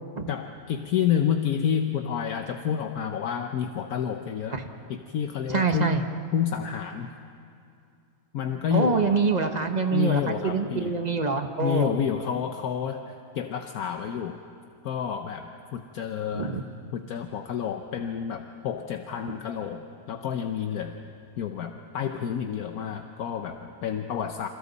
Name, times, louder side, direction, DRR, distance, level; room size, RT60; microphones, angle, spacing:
voice 1, 0.3-4.6 4.9-6.0 6.3-7.1 8.3-9.2 9.9-10.9 11.6-14.4 14.8-16.6 16.9-21.0 21.4-24.5, left 8 dB, 70° left, 6 dB, 1.3 m, -29 dB
voice 2, 5.5-6.0 8.7-11.9 16.3-16.6, right 4 dB, 30° right, 6 dB, 1.0 m, -25 dB
29.0 x 27.0 x 4.1 m, 2.5 s
omnidirectional pair, 1.7 m